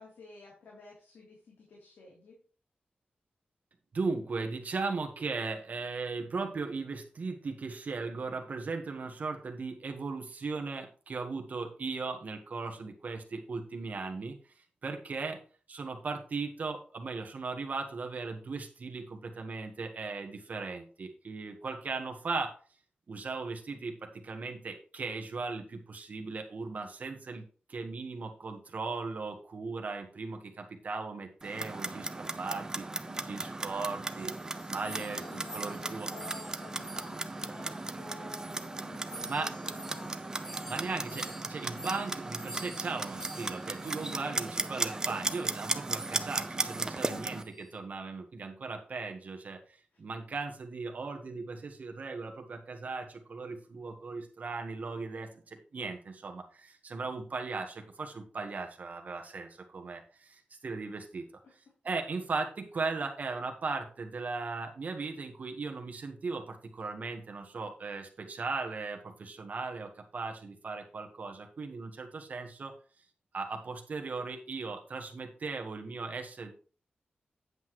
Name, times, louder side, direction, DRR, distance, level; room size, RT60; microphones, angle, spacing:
voice 1, 0.0-2.4 33.1-33.6 34.8-40.3 44.0-44.4 46.9-47.4 49.9-50.0, left 3 dB, 85° left, -4 dB, 3.3 m, -51 dB
voice 2, 3.9-15.4 15.7-22.6 23.1-27.4 27.7-36.1 39.3-39.5 40.7-61.3 61.8-72.7 73.3-76.5, right 4 dB, 50° right, 4 dB, 1.3 m, -37 dB
Clock, 31.4-47.4, right 2 dB, 20° right, 0.6 m, -36 dB
sound 1, 34.1-38.1 38.3-44.3 44.6-44.8 45.3-45.6 45.9-46.4 46.7-46.9 47.4-47.7, right 2 dB, 20° left, 2.1 m, -49 dB
9.4 x 8.1 x 3.1 m, 0.39 s
wide cardioid pair, 150°, 3 cm